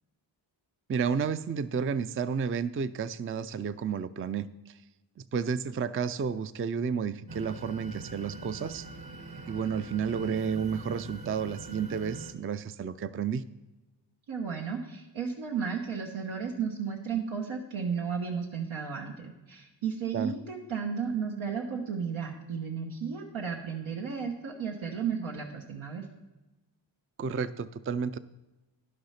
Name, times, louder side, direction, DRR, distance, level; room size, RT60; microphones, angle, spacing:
voice 1, 0.9-4.8 5.3-8.9 9.5-13.4 20.1-20.3 27.2-28.2, right 6 dB, 30° right, 13 dB, 0.4 m, -31 dB
sound 1, 7.3-12.3, right 2 dB, 50° right, 1.4 m, -44 dB
voice 2, 14.3-26.0, right 6 dB, 85° right, 0 dB, 1.3 m, -34 dB
11.0 x 6.7 x 5.7 m, 1.1 s
cardioid pair, 75°, 47 cm